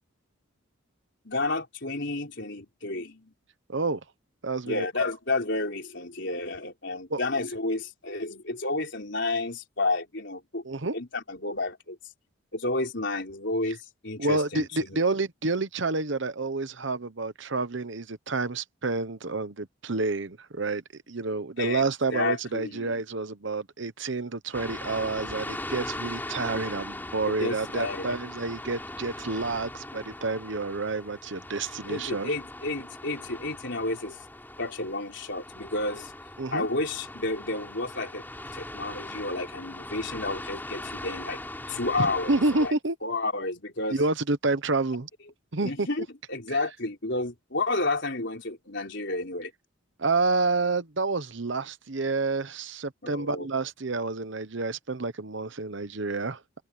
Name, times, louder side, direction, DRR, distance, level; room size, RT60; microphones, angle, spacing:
voice 1, 1.2-3.3 4.7-10.6 10.9-12.0 12.5-15.0 21.6-22.9 27.2-28.1 31.8-34.2 34.6-36.1 36.5-38.2 38.5-41.4 41.7-42.7 43.0-44.0 45.6-49.5 53.0-53.5, left 2 dB, 55° left, 4.6 m, -31 dB
voice 2, 3.7-4.0 4.4-5.1 7.1-7.2 10.6-10.9 14.2-32.3 36.4-36.7 42.0-43.0 43.9-45.1 45.5-45.9 50.0-56.6, right 3 dB, 60° right, 1.0 m, -29 dB
sound 1, 24.5-42.7, left 1 dB, 10° left, 4.2 m, -40 dB
open air
head